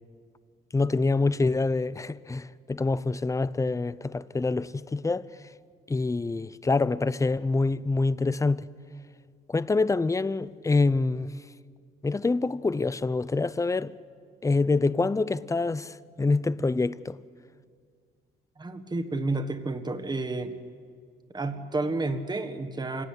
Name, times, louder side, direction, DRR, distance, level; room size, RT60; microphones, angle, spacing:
voice 1, 0.7-5.3 5.9-8.7 9.5-11.3 12.0-13.9 14.4-17.2, left 3 dB, 15° left, 0.6 m, -26 dB
voice 2, 18.6-20.6 21.3-23.1, right 2 dB, 20° right, 1.6 m, -30 dB
26.5 x 17.5 x 9.9 m
cardioid pair, 90°, 20 cm